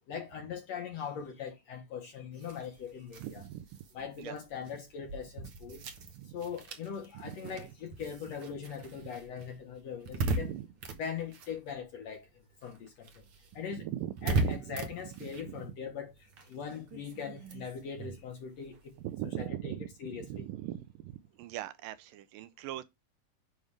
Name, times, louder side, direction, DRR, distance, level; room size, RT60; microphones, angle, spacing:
voice 1, 0.1-3.5 3.9-5.9 6.3-10.5 11.0-12.3 12.6-13.1 13.6-13.9 14.2-16.1 16.5-19.0 19.2-20.5, left 7 dB, 65° left, 1.8 m, -41 dB
sound 1, 2.3-12.2 12.5-19.5, right 3 dB, 60° right, 1.4 m, -39 dB
voice 2, 3.2-3.7 4.2-4.4 6.2-6.3 7.2-7.4 10.4-10.7 13.8-14.6 15.5-15.6 19.0-19.9 20.3-21.1 21.4-22.8, right 13 dB, 80° right, 2.2 m, -39 dB
10.5 x 3.6 x 3.3 m
omnidirectional pair, 4.1 m